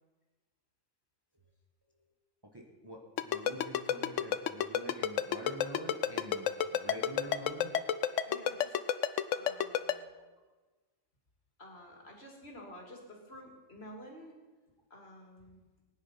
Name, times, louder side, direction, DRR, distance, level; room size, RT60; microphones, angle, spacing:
voice 1, 2.4-7.7, equal, 20° right, 1 dB, 1.5 m, -46 dB
Ringtone, 3.2-9.9, left 10 dB, 75° left, 1.0 m, -29 dB
voice 2, 8.2-8.8 9.3-10.0 11.6-14.4 14.9-15.8, equal, 50° left, 0 dB, 3.1 m, -51 dB
19.5 x 10.5 x 5.8 m, 1.3 s
omnidirectional pair, 1.3 m